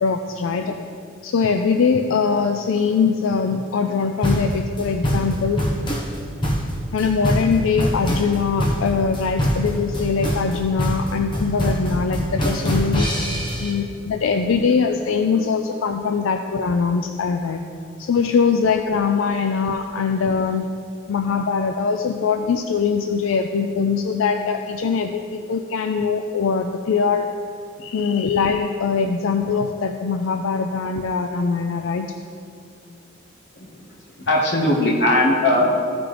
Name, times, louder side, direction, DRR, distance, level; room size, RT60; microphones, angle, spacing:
voice 1, 0.0-0.8 1.2-5.6 6.9-13.1 13.6-17.6 18.0-20.7 21.1-27.3 27.8-32.1, left 5 dB, 90° left, 6 dB, 0.4 m, -22 dB
sound 1, 4.2-13.7, equal, 25° left, 1.2 m, -23 dB
voice 2, 34.2-35.6, left 1 dB, 60° left, -1 dB, 1.4 m, -18 dB
13.5 x 5.9 x 3.3 m, 2.5 s
head